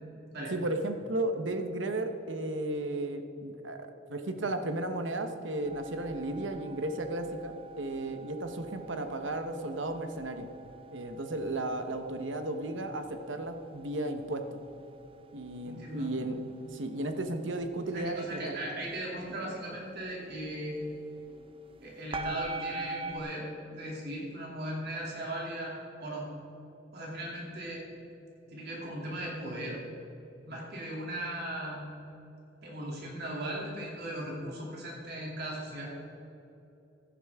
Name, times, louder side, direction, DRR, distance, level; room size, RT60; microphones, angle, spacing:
voice 1, 0.5-10.5 10.9-14.6 15.3-16.4 16.7-18.6, right 1 dB, 75° right, 7 dB, 1.0 m, -34 dB
sound 1, 5.6-23.2, right 2 dB, 30° right, 0.6 m, -45 dB
voice 2, 15.6-16.1 17.9-20.8 21.8-26.2 26.9-27.8 28.5-29.8 30.5-31.9 32.6-35.9, right 1 dB, 60° right, -3 dB, 2.7 m, -38 dB
15.5 x 10.0 x 3.6 m, 2.9 s
head